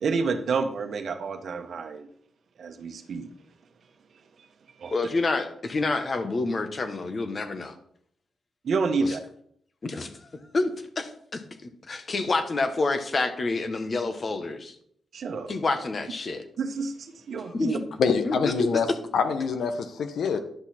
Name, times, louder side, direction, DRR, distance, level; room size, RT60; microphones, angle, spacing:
voice 1, 0.0-2.1 2.6-3.3 4.8-4.9 8.6-9.2 15.1-15.5 16.6-17.8, right 4 dB, 65° right, 7 dB, 1.1 m, -29 dB
voice 2, 4.9-7.7 9.0-9.2 9.8-10.1 10.5-10.7 11.0-14.7 15.5-16.4 17.3-17.8 18.2-18.7, left 3 dB, 45° left, 9 dB, 1.2 m, -28 dB
voice 3, 18.0-20.4, left 5 dB, 75° left, 9 dB, 0.9 m, -25 dB
10.5 x 6.1 x 4.3 m, 0.67 s
supercardioid pair, 55°, 0 cm